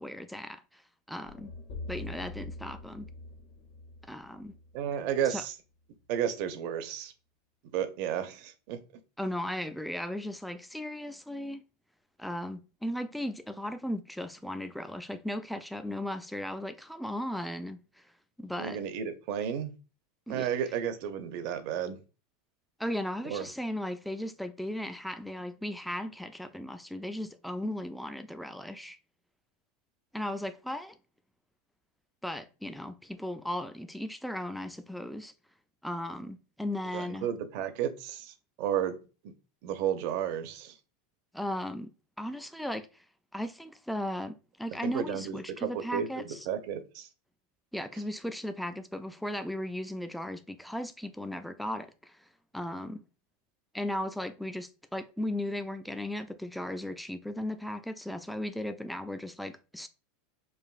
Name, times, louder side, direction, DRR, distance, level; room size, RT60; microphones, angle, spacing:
voice 1, 0.0-1.5 1.9-3.1 4.0-4.6 5.3-5.4 9.2-11.6 12.2-18.1 18.4-18.8 20.3-20.5 22.8-29.0 30.1-31.0 32.2-35.3 35.8-37.3 41.3-41.9 42.2-43.1 43.3-46.5 47.7-52.3 52.5-53.1 53.7-59.9, left 1 dB, ahead, 0.3 m, -36 dB
sound 1, 1.2-5.4, left 2 dB, 60° left, 0.6 m, -44 dB
voice 2, 4.7-5.5 6.1-7.1 7.7-8.8 18.6-19.8 20.3-22.0 23.3-23.5 36.9-39.0 39.2-39.3 39.6-40.7 44.8-47.1, right 9 dB, 60° right, 0.6 m, -32 dB
4.8 x 2.5 x 2.4 m
hypercardioid pair, 110°, 0 cm